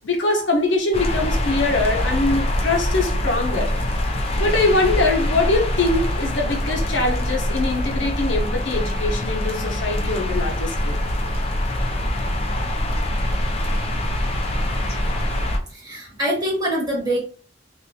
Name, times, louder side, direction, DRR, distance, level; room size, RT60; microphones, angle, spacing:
voice 1, 0.0-3.7 4.4-11.0, left 2 dB, 85° left, 0.9 m, -22 dB
sound 1, 0.9-15.6, left 1 dB, 35° left, 0.5 m, -24 dB
voice 2, 15.7-17.2, equal, 20° right, 1.4 m, -24 dB
3.1 x 2.5 x 2.8 m
head